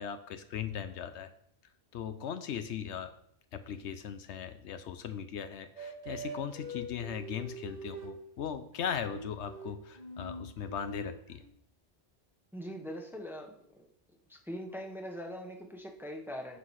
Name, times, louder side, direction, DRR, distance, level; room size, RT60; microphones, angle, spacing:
voice 1, 0.0-1.3 1.9-3.1 3.5-11.4, left 8 dB, 80° left, 10 dB, 1.0 m, -38 dB
sound 1, 5.8-8.2 8.8-11.5, right 1 dB, 40° right, 1.3 m, -44 dB
voice 2, 12.5-13.9 14.3-16.6, equal, ahead, 3 dB, 0.9 m, -42 dB
8.2 x 5.8 x 4.8 m, 0.69 s
omnidirectional pair, 1.2 m